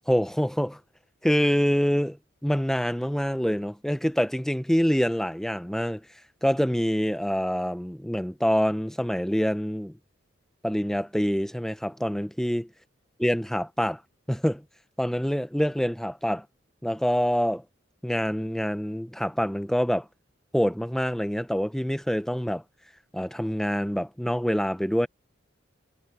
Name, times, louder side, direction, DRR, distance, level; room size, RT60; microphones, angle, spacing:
voice 1, 0.1-0.8 1.2-6.1 6.4-10.0 10.6-12.7 13.2-14.0 14.3-14.6 15.0-16.5 16.8-17.6 18.0-20.1 20.5-22.6 23.1-25.1, equal, ahead, 0.7 m, -26 dB
head